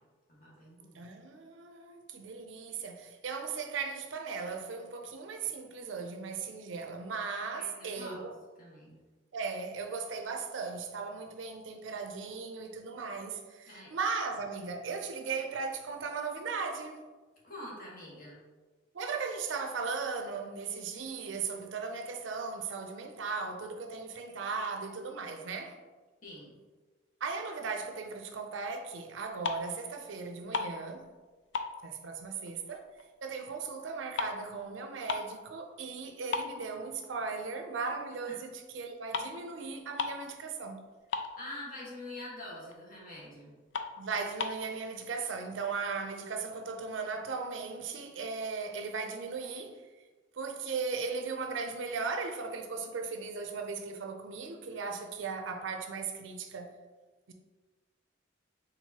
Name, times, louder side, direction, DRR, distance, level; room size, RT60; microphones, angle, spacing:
voice 1, 0.3-1.0 7.5-8.3 8.6-9.0 13.7-13.9 17.4-18.4 26.2-26.6 38.3-38.4 41.4-43.6, left 1 dB, 50° left, 1.5 m, -45 dB
voice 2, 0.9-8.4 9.3-17.0 18.9-25.8 27.2-31.1 31.8-32.9 33.2-40.8 44.0-49.9 50.3-56.7 57.3-57.4, right 4 dB, 80° right, 0.5 m, -37 dB
sound 1, 29.4-29.9 30.2-31.3 31.5-33.1 33.4-35.4 35.8-35.9 36.3-37.4 37.8-38.0 38.8-38.9 39.1-39.4 39.6-39.7 39.9-40.3 40.6-40.7 40.9-41.8 42.2-42.3 42.7-42.8 43.2-43.3 43.7-44.7, left 5 dB, 70° left, 0.4 m, -36 dB
4.6 x 3.7 x 2.8 m
head